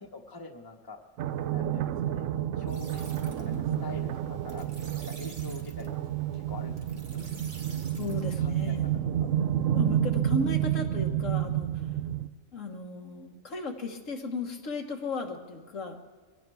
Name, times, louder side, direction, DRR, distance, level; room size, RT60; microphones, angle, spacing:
voice 1, 0.0-1.0 1.5-2.3 2.6-4.7 5.0-5.9 6.3-7.2 8.4-9.3, left 3 dB, 20° left, 3 dB, 1.1 m, -45 dB
sound 1, 1.2-12.3, right 11 dB, 80° right, 1.0 m, -30 dB
sound 2, 2.7-9.0, right 2 dB, 55° right, 1.8 m, -50 dB
voice 2, 8.0-8.9 9.7-11.8 12.5-16.0, left 2 dB, 80° left, 2 dB, 1.9 m, -35 dB
23.0 x 17.0 x 3.4 m, 1.5 s
omnidirectional pair, 1.3 m